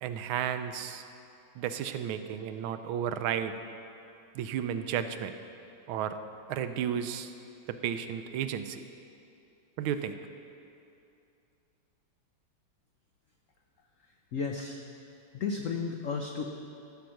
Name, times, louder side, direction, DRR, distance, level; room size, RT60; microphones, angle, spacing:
voice 1, 0.0-1.0 1.6-3.5 4.3-5.3 5.9-6.2 6.5-7.3 7.7-8.8 9.8-10.2, right 9 dB, 85° right, 9 dB, 1.4 m, -33 dB
voice 2, 14.3-14.8 15.3-16.4, left 5 dB, 85° left, 2 dB, 0.7 m, -33 dB
14.0 x 5.9 x 6.4 m, 2.6 s
omnidirectional pair, 2.2 m